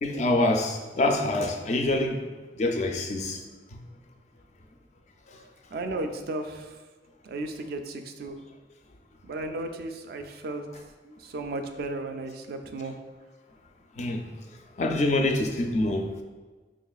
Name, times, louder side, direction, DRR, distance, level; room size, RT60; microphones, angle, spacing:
voice 1, 0.0-2.2 2.6-3.4 14.0-14.2 14.8-16.0, left 2 dB, 40° left, 4 dB, 0.3 m, -25 dB
voice 2, 5.7-6.8 7.2-8.4 9.2-10.6 11.0-12.9, right 2 dB, 55° right, 6 dB, 0.3 m, -34 dB
4.5 x 3.0 x 2.3 m, 1.3 s
head